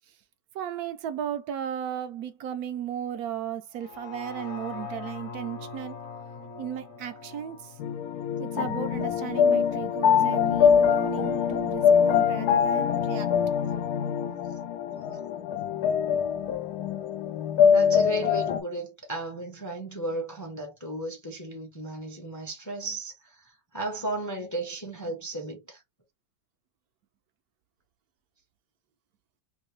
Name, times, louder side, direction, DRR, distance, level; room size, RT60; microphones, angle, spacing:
voice 1, 0.5-6.0 6.6-7.8 8.4-13.3, right 9 dB, 75° right, 1.1 m, -35 dB
sound 1, 3.8-9.9 10.3-10.4, left 4 dB, 55° left, 1.3 m, -42 dB
sound 2, 7.8-18.6, left 7 dB, 80° left, 1.1 m, -23 dB
voice 2, 17.7-25.8, right 2 dB, 20° left, 0.6 m, -35 dB
3.0 x 2.7 x 3.1 m
omnidirectional pair, 1.6 m